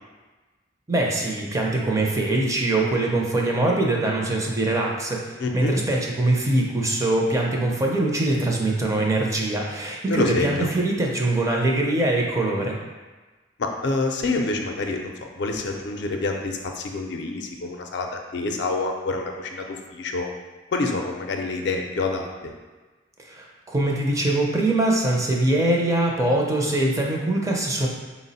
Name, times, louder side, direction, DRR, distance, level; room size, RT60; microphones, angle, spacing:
voice 1, 0.9-5.2 5.5-12.8 23.2-27.9, right 2 dB, 15° right, -1 dB, 0.4 m, -23 dB
voice 2, 5.4-5.8 10.1-10.7 13.6-20.3 20.7-22.5, left 3 dB, 65° left, 3 dB, 0.4 m, -27 dB
4.3 x 2.0 x 4.0 m, 1.3 s
head